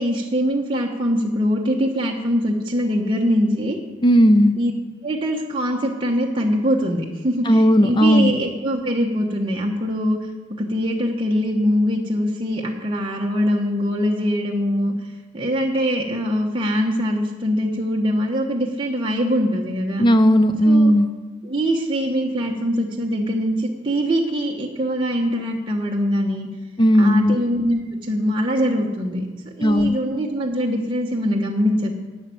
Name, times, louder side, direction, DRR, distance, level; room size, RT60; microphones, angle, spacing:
voice 1, 0.0-3.8 4.6-4.7 5.0-10.2 10.6-14.9 15.3-20.1 20.6-20.9 21.4-26.5 27.0-29.2 29.6-31.9, equal, 25° right, -2 dB, 1.0 m, -22 dB
voice 2, 4.0-4.5 7.5-8.3 20.0-21.1 26.8-27.4 29.6-30.0, equal, 25° left, 10 dB, 0.4 m, -15 dB
11.5 x 6.1 x 9.0 m, 1.2 s
head